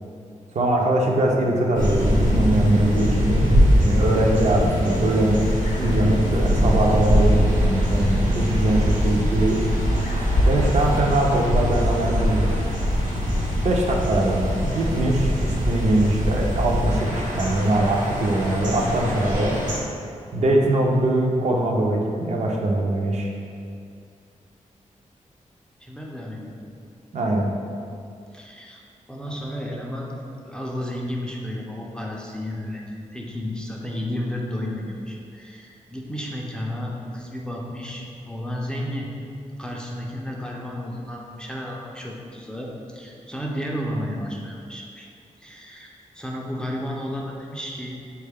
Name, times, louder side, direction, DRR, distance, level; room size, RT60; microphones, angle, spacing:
voice 1, 0.5-5.4 5.7-9.6 10.5-12.6 13.6-19.5 20.3-23.3 27.1-27.5, right 1 dB, 60° right, -1 dB, 0.5 m, -22 dB
sound 1, 1.7-19.8, equal, 80° right, 0.8 m, -22 dB
sound 2, 5.1-11.0, left 1 dB, 80° left, 0.4 m, -30 dB
voice 2, 25.8-26.5 28.3-28.8 29.1-30.1 30.4-32.8 33.1-39.1 39.6-45.1 45.4-48.0, equal, 5° left, -2 dB, 0.3 m, -32 dB
3.6 x 2.2 x 3.4 m, 2.4 s
wide cardioid pair, 115°, 13 cm